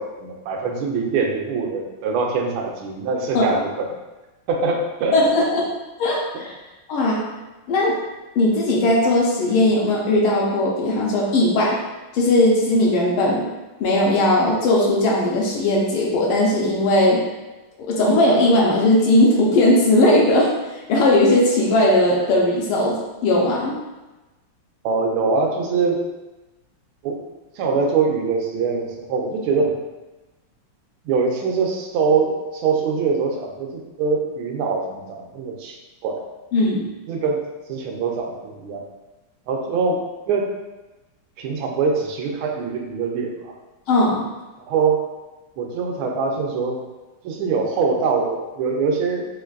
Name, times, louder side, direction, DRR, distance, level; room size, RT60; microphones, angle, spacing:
voice 1, 0.0-3.9 4.5-5.2 24.8-26.0 27.0-27.2 27.5-29.8 31.0-35.8 36.0-36.2 37.1-37.4 37.7-38.8 39.5-40.0 40.3-40.5 41.4-43.5 44.7-45.0 45.6-46.8 47.2-49.3, right 4 dB, 75° right, 1 dB, 1.3 m, -23 dB
voice 2, 5.1-5.6 6.0-6.5 6.9-7.2 7.7-8.0 8.3-11.8 12.1-13.5 13.8-17.2 17.8-20.5 20.9-23.8 36.5-36.9 43.9-44.2, left 1 dB, 80° left, -3 dB, 1.5 m, -18 dB
4.4 x 2.5 x 2.4 m, 1.1 s
omnidirectional pair, 2.4 m